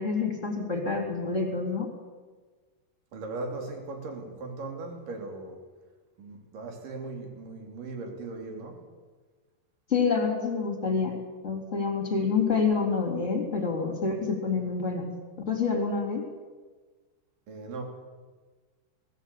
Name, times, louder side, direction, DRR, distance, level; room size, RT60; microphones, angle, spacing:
voice 1, 0.0-1.9 9.9-15.1 15.5-16.2, left 5 dB, 20° left, 1 dB, 3.4 m, -27 dB
voice 2, 3.1-5.6 6.2-8.8 17.5-17.8, right 3 dB, 55° right, 3 dB, 4.5 m, -38 dB
20.0 x 17.0 x 8.5 m, 1.4 s
omnidirectional pair, 4.8 m